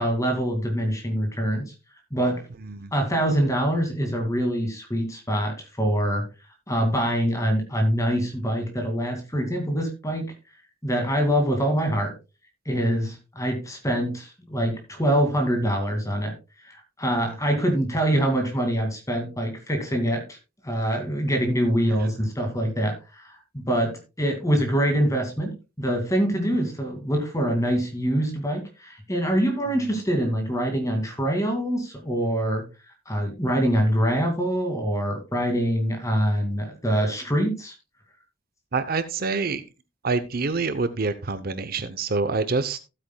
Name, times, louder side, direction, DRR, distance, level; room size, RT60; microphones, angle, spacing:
voice 1, 0.0-1.7 2.1-2.4 2.9-6.3 6.7-10.3 10.8-12.1 12.7-16.3 16.6-20.4 20.6-32.6 33.1-37.7, equal, 15° left, 4 dB, 2.2 m, -24 dB
voice 2, 2.6-2.9 17.1-17.4 22.0-22.1 38.7-39.6 40.0-42.9, right 4 dB, 45° right, 12 dB, 0.7 m, -27 dB
15.0 x 8.7 x 2.2 m, 0.28 s
head